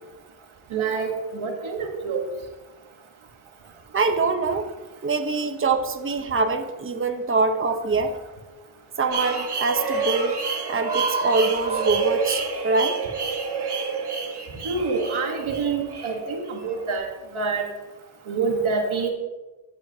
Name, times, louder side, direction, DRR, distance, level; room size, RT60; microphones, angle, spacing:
voice 1, 0.7-2.2 14.6-17.1 17.3-17.6 18.3-19.1, right 4 dB, 85° right, 3 dB, 1.5 m, -26 dB
voice 2, 3.9-4.7 5.0-8.2 9.0-10.4 10.7-13.0, right 3 dB, 25° right, 6 dB, 0.9 m, -24 dB
sound 1, 9.1-17.0, right 4 dB, 55° right, 1.6 m, -28 dB
13.5 x 7.8 x 2.8 m, 1.2 s
cardioid pair, 60°, 47 cm